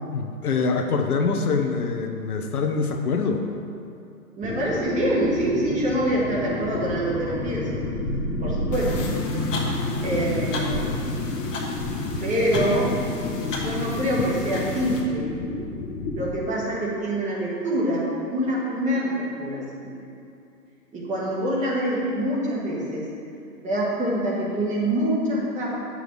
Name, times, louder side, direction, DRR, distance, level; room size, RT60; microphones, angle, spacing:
voice 1, 0.0-3.4, left 4 dB, 65° left, 4 dB, 0.9 m, -24 dB
sound 1, 4.4-16.3, left 2 dB, 10° left, 0.6 m, -30 dB
voice 2, 4.4-7.8 8.4-9.0 10.0-11.1 12.2-12.9 13.5-15.3 16.1-18.0 18.3-19.9 20.9-23.1 23.6-25.8, right 1 dB, 15° right, -5 dB, 1.4 m, -25 dB
sound 2, 8.7-15.0, left 2 dB, 50° left, 1.4 m, -32 dB
10.0 x 7.0 x 3.2 m, 2.6 s
figure-of-eight pair, 125°, 47 cm